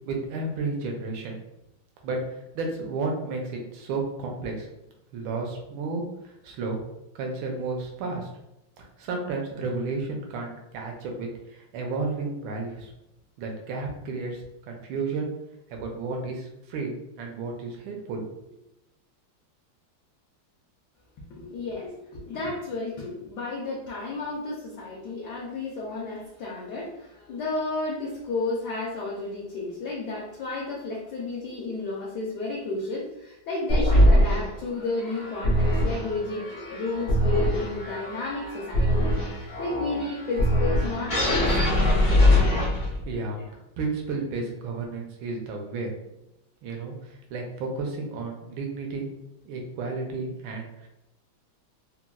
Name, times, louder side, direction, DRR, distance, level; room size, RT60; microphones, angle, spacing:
voice 1, 0.1-1.4 2.0-2.2 2.5-4.7 5.1-6.8 7.1-8.3 9.0-12.9 13.4-15.3 15.7-18.3 42.8-43.4 43.8-45.9 46.6-49.1 49.4-50.9, right 3 dB, 75° right, 1 dB, 1.4 m, -32 dB
voice 2, 21.3-41.8, left 3 dB, 70° left, -5 dB, 1.1 m, -32 dB
sound 1, 33.7-43.1, left 1 dB, 50° left, 0.5 m, -23 dB
3.9 x 2.2 x 2.3 m, 0.87 s
omnidirectional pair, 2.2 m